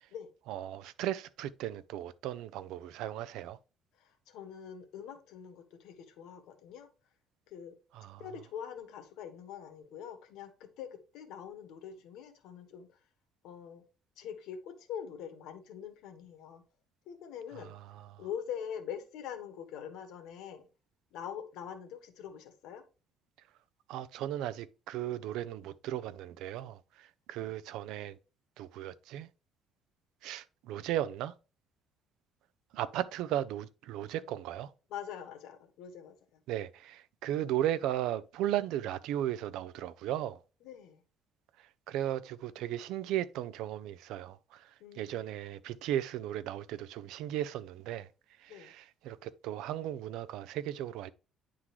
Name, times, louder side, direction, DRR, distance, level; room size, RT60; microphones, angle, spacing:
voice 1, 0.5-3.6 7.9-8.2 17.5-18.2 23.9-28.2 28.6-29.3 30.2-31.3 32.7-34.7 36.5-40.4 41.6-48.1 48.4-51.1, right 12 dB, 85° right, 0.4 m, -36 dB
voice 2, 3.9-6.9 7.5-7.7 8.2-10.5 10.8-12.9 13.4-13.8 14.2-16.6 17.1-17.7 18.2-20.7 21.1-22.8 27.4-27.5 34.9-36.4 40.6-41.0 44.8-45.2 48.5-48.7, left 8 dB, 85° left, 1.3 m, -44 dB
9.7 x 3.7 x 3.0 m
cardioid pair, 180°, 0 cm